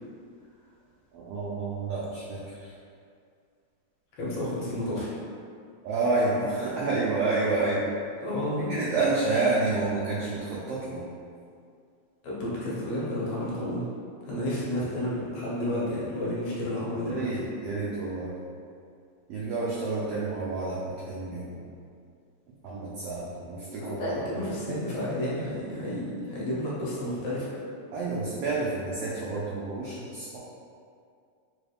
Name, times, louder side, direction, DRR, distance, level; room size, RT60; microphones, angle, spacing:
voice 1, 1.1-2.7 5.8-7.9 8.7-11.0 17.1-18.3 19.3-21.6 22.6-25.1 27.9-30.4, right 3 dB, 85° right, -6 dB, 1.3 m, -29 dB
voice 2, 4.2-5.1 8.2-8.7 12.2-13.9 14.3-17.3 23.8-27.5, left 1 dB, 70° left, -7 dB, 1.8 m, -31 dB
4.4 x 3.3 x 2.3 m, 2.3 s
omnidirectional pair, 3.3 m